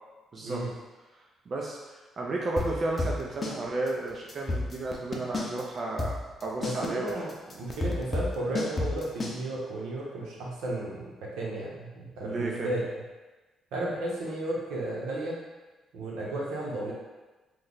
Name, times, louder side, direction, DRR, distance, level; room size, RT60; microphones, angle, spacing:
voice 1, 0.3-0.7 1.1-7.5 12.2-12.7, right 2 dB, 45° right, -2 dB, 0.4 m, -33 dB
sound 1, 2.6-3.6 3.9-4.0 4.3-5.6 6.0-9.4, left 2 dB, 30° left, 0.6 m, -30 dB
voice 2, 6.6-7.3 7.6-13.0 13.7-15.4 15.9-16.9, right 1 dB, 90° right, -4 dB, 0.8 m, -33 dB
3.1 x 2.1 x 3.9 m, 1.2 s
cardioid pair, 90°, 0 cm